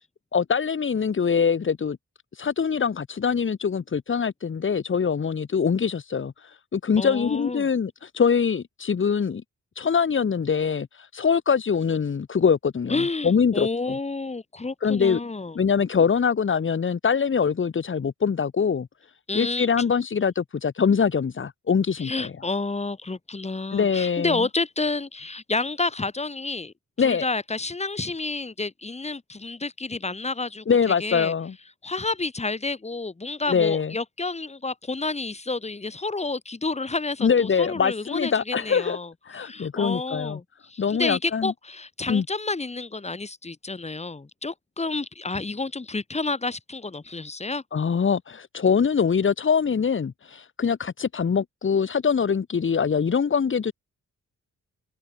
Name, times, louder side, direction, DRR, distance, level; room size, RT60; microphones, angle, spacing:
voice 1, 0.3-2.0 2.3-9.4 9.8-14.0 14.8-15.2 15.5-18.9 19.3-22.3 23.7-24.5 27.0-27.2 30.7-31.5 33.5-33.9 37.2-39.0 39.2-40.4 40.8-41.5 42.1-42.2 47.7-53.7, left 6 dB, 40° left, 2.9 m, -23 dB
voice 2, 7.0-7.7 12.9-15.6 19.3-19.7 22.0-26.7 27.0-30.6 31.0-31.3 31.8-39.1 39.4-40.4 40.7-47.6, left 3 dB, 20° left, 6.2 m, -30 dB
wide cardioid pair, 140°, 30 cm